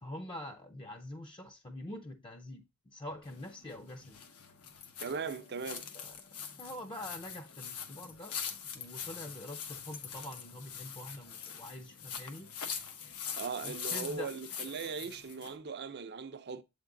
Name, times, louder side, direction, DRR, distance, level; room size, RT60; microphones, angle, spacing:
voice 1, 0.0-2.7 2.9-4.2 5.9-6.2 6.5-8.4 8.7-12.5 13.6-14.3, left 1 dB, 25° left, 0.6 m, -45 dB
sound 1, 3.1-15.5, left 3 dB, 65° left, 1.2 m, -63 dB
sound 2, 3.2-15.6, left 7 dB, 90° left, 1.1 m, -43 dB
voice 2, 5.0-5.9 13.4-16.6, right 5 dB, 50° right, 0.6 m, -39 dB
7.6 x 3.6 x 3.7 m
head